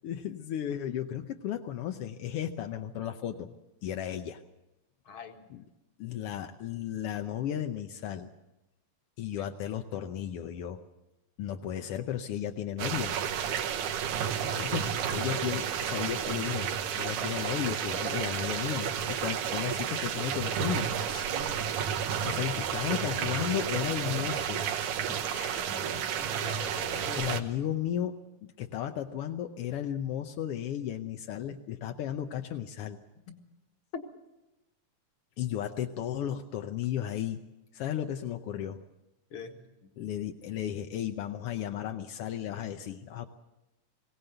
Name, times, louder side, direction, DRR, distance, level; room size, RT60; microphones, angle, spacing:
voice 1, 0.0-3.5 3.8-4.4 5.5-5.6 6.0-8.3 9.2-10.8 11.4-13.1 14.5-14.9 15.1-16.7 17.0-21.0 22.2-24.9 27.1-28.1 28.4-33.0 35.4-37.4 37.7-38.8 40.0-43.3, left 10 dB, 70° left, 5 dB, 1.4 m, -34 dB
voice 2, 5.1-5.5 9.4-9.5 14.4-14.7 20.7-21.7 25.3-27.5 33.3-33.4 33.9-34.0 39.3-39.6, left 4 dB, 50° left, 5 dB, 2.3 m, -44 dB
sound 1, 12.8-27.4, right 8 dB, 90° right, 2.7 m, -31 dB
21.5 x 18.0 x 7.9 m, 0.99 s
omnidirectional pair, 3.5 m